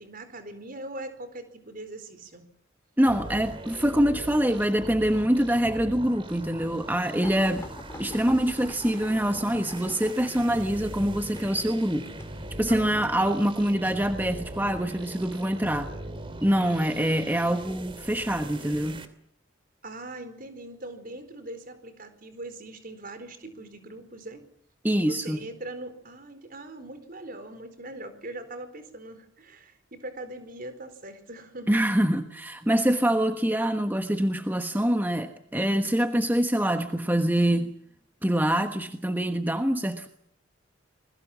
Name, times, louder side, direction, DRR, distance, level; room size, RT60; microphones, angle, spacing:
voice 1, 0.0-2.4 12.7-13.3 19.8-24.4 25.0-31.8, right 2 dB, 45° right, 10 dB, 4.3 m, -41 dB
voice 2, 3.0-7.7 8.0-12.1 12.6-15.9 16.4-19.0 24.8-25.4 31.7-37.8 38.2-40.1, right 1 dB, 10° right, 7 dB, 1.2 m, -25 dB
sound 1, 3.1-19.1, right 1 dB, 25° right, 2.6 m, -41 dB
sound 2, 7.2-14.0 14.8-15.2 16.2-16.8 17.5-17.7 18.1-18.2, left 1 dB, 15° left, 3.8 m, -44 dB
28.0 x 21.5 x 7.4 m, 0.66 s
head